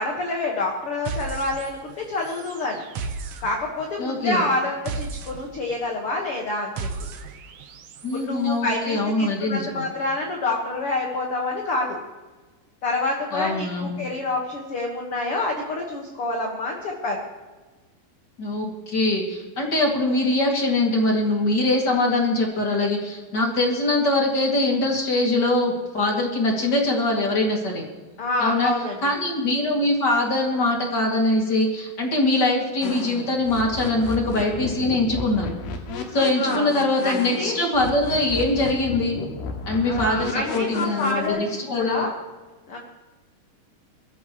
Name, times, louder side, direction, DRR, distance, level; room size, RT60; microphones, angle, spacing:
voice 1, 0.0-2.8 3.4-6.9 8.1-12.0 12.8-17.2 28.2-29.1 36.4-36.7 37.0-37.6 39.8-41.4 41.7-42.1 42.7-42.8, left 2 dB, 50° left, 0 dB, 2.0 m, -27 dB
sound 1, 1.1-8.2, right 4 dB, 70° right, 1.5 m, -35 dB
voice 2, 4.0-4.4 8.0-9.8 13.3-14.0 18.4-27.8 28.4-28.7 29.0-35.5 36.1-39.2 39.7-42.1, left 2 dB, 30° left, 0 dB, 2.6 m, -23 dB
sound 2, 32.8-41.3, left 4 dB, 90° left, 3.5 m, -33 dB
22.5 x 14.0 x 3.1 m, 1.3 s
omnidirectional pair, 4.2 m